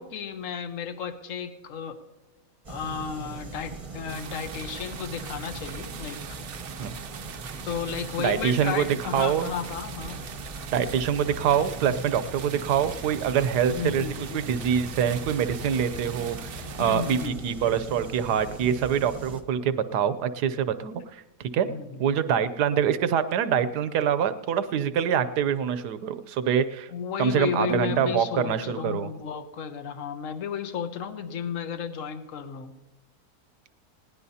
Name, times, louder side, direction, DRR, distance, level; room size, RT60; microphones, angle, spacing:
voice 1, 0.0-2.0 2.7-6.2 7.7-10.2 13.7-14.4 16.8-17.4 21.6-22.0 26.9-32.7, left 7 dB, 55° left, 9 dB, 1.2 m, -33 dB
sound 1, 2.6-19.4, right 3 dB, 25° right, 1.0 m, -40 dB
sound 2, 4.1-17.3, right 8 dB, 55° right, 0.9 m, -42 dB
voice 2, 8.2-8.9 9.1-9.5 10.7-21.7 22.0-26.9 27.2-29.1, right 8 dB, 75° right, 12 dB, 1.3 m, -25 dB
sound 3, 9.7-17.8, left 3 dB, 80° left, 1.6 m, -45 dB
20.0 x 17.5 x 2.8 m, 1.0 s
omnidirectional pair, 1.8 m